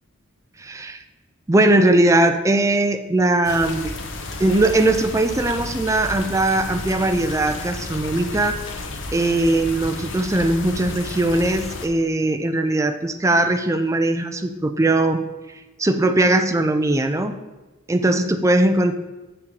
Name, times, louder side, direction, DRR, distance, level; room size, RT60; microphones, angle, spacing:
voice 1, 0.6-1.0 1.5-3.9 4.4-8.6 9.1-15.2 15.5-17.4 17.9-18.9, right 2 dB, 15° right, 8 dB, 0.4 m, -20 dB
sound 1, 3.4-11.9, left 2 dB, 60° left, 0.8 m, -32 dB
6.6 x 5.9 x 4.7 m, 1.1 s
head